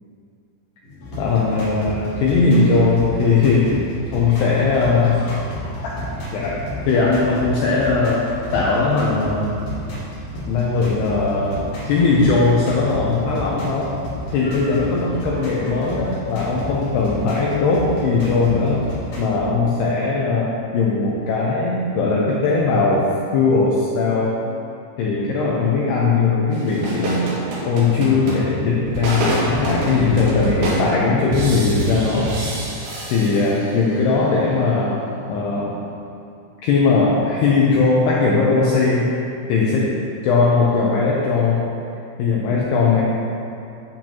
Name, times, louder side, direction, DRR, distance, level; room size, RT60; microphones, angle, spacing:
sound 1, 0.8-19.3, left 1 dB, 45° left, 2.4 m, -32 dB
voice 1, 1.2-3.8 4.1-5.2 5.8-5.9 6.3-6.6 6.9-8.2 8.5-9.5 10.5-13.9 14.3-18.8 19.2-23.1 23.3-24.4 25.0-27.4 27.7-32.6 33.1-35.0 35.3-35.8 36.6-39.1 39.5-40.0 40.2-41.6 42.2-43.0, left 4 dB, 80° left, -4 dB, 2.4 m, -19 dB
sound 2, 26.5-33.9, right 2 dB, 85° right, 4.1 m, -26 dB
10.5 x 8.4 x 2.9 m, 2.6 s
omnidirectional pair, 5.6 m